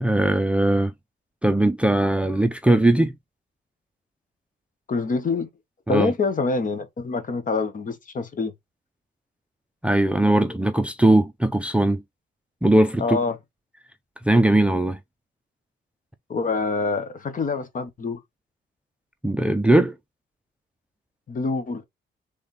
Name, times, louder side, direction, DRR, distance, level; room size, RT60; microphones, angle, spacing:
voice 1, 0.0-0.9 1.4-3.2 5.9-6.1 9.8-12.0 12.6-13.2 14.2-15.0 19.2-19.9, right 1 dB, 5° right, 0.5 m, -19 dB
voice 2, 4.9-5.5 5.9-8.5 13.0-13.4 16.3-18.2 21.3-21.8, left 4 dB, 40° left, 1.2 m, -26 dB
3.4 x 3.3 x 4.2 m
cardioid pair, 90°, 20 cm